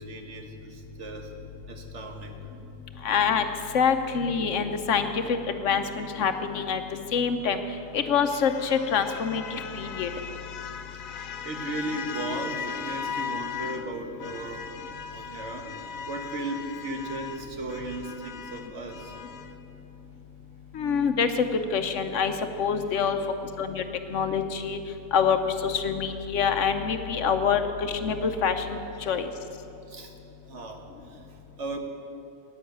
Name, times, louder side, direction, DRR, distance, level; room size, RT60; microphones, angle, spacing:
voice 1, 0.0-1.3 1.7-2.5 11.4-14.7 15.0-19.2 29.7-31.8, right 2 dB, 60° right, 4 dB, 1.4 m, -36 dB
voice 2, 3.0-3.4 3.7-6.8 7.1-7.6 7.9-10.1 20.7-21.5 21.7-22.3 22.6-23.2 23.6-23.8 24.1-24.8 25.1-28.8 29.1-29.3, left 6 dB, 70° left, 8 dB, 1.0 m, -25 dB
sound 1, 7.2-13.9 14.2-19.6, left 7 dB, 90° left, 1.1 m, -38 dB
10.0 x 8.6 x 9.2 m, 2.8 s
omnidirectional pair, 1.4 m